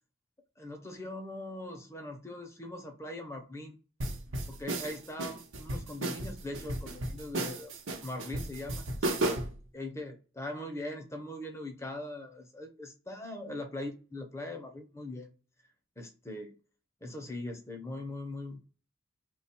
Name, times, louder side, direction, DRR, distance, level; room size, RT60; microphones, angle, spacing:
voice 1, 0.6-3.8 4.5-7.7 8.0-8.8 9.2-9.5 9.7-15.3 16.0-16.5 17.0-18.7, left 1 dB, 15° left, 0.6 m, -41 dB
sound 1, 4.0-9.6, right 1 dB, 70° right, 0.8 m, -34 dB
3.2 x 2.2 x 4.3 m
head